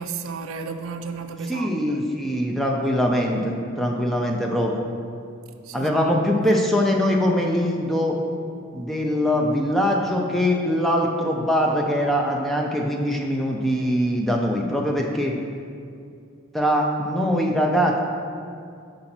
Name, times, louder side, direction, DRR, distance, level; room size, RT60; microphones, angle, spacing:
voice 1, 0.0-2.1 5.6-5.9, right 4 dB, 85° right, 7 dB, 0.4 m, -33 dB
voice 2, 1.5-4.8 5.7-8.2 8.7-15.3 16.5-18.0, equal, ahead, 0 dB, 0.5 m, -22 dB
5.7 x 3.9 x 5.9 m, 2.4 s
head